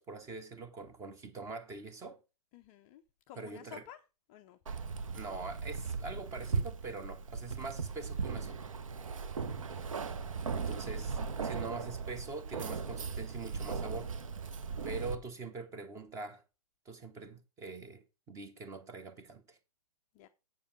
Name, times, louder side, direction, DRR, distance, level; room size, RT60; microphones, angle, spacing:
voice 1, 0.0-2.2 3.4-3.8 5.1-8.7 10.5-14.1 14.8-16.4 16.8-19.6, right 3 dB, 15° right, 1.0 m, -44 dB
voice 2, 2.5-4.0 4.3-4.6 9.7-9.9 20.1-20.3, left 12 dB, 20° left, 0.4 m, -53 dB
Keys jangling, 4.7-15.2, right 5 dB, 60° right, 0.9 m, -38 dB
7.7 x 7.1 x 5.0 m
figure-of-eight pair, 120°, 19 cm